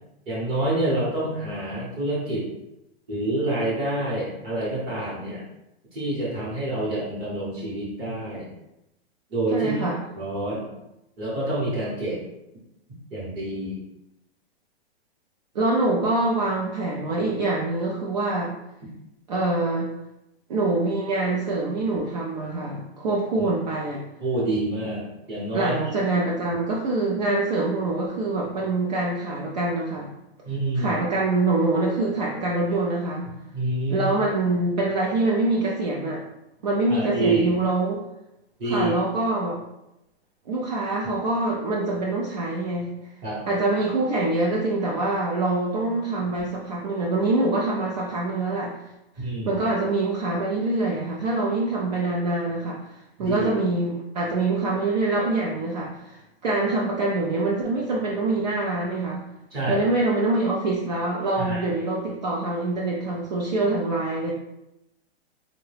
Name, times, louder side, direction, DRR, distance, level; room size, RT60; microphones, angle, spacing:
voice 1, 0.3-2.5 3.1-5.4 5.9-8.5 9.3-9.7 10.1-10.7 11.2-12.2 13.1-13.8 23.4-23.5 24.2-25.9 30.4-30.9 33.5-34.1 36.9-37.5 38.6-38.9 43.2-43.4 49.2-49.6 53.2-53.5 59.5-59.8 61.4-61.6, right 2 dB, 15° right, -6 dB, 0.8 m, -27 dB
voice 2, 9.5-10.0 15.5-18.5 19.3-19.9 20.5-24.0 25.5-30.1 30.7-33.3 33.9-36.2 36.6-38.0 38.6-39.6 40.5-42.9 43.5-48.8 49.2-59.2 59.7-64.3, right 2 dB, 45° right, -3 dB, 0.5 m, -25 dB
3.7 x 2.1 x 3.2 m, 0.89 s
hypercardioid pair, 170°, 32 cm